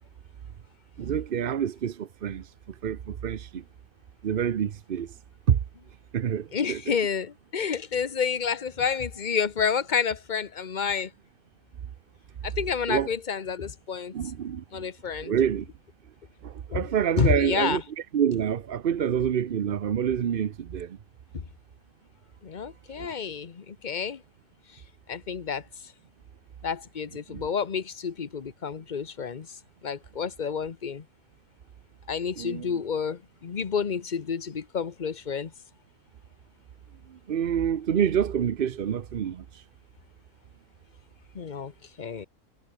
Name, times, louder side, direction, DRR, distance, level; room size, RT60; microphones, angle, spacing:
voice 1, 1.0-2.5 2.8-3.6 4.2-5.1 5.5-5.6 6.1-7.0 12.9-13.1 14.1-14.6 15.2-15.7 16.4-17.8 18.1-21.0 23.0-23.2 27.3-27.4 32.4-32.8 37.1-39.6, right 8 dB, 50° right, 0.7 m, -27 dB
voice 2, 6.5-11.1 12.4-14.1 14.7-15.3 16.7-16.8 17.2-17.8 21.3-21.4 22.4-24.2 25.1-25.6 26.6-29.6 29.8-31.0 32.1-35.5 41.3-41.7 42.0-42.3, left 6 dB, 35° left, 1.0 m, -29 dB
omnidirectional pair, 1.6 m